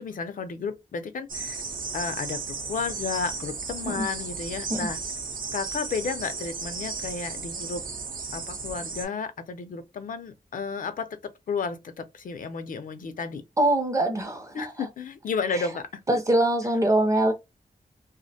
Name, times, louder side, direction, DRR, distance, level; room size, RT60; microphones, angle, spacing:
voice 1, 0.0-1.6 1.9-5.0 5.5-7.8 8.3-11.2 11.5-13.4 14.5-15.9, left 5 dB, 70° left, 0.4 m, -32 dB
sound 1, 1.3-9.1, right 4 dB, 70° right, 0.6 m, -35 dB
voice 2, 13.6-14.9 15.5-15.6 16.1-17.3, right 1 dB, 20° right, 0.5 m, -23 dB
2.4 x 2.0 x 2.7 m
wide cardioid pair, 145°, 15 cm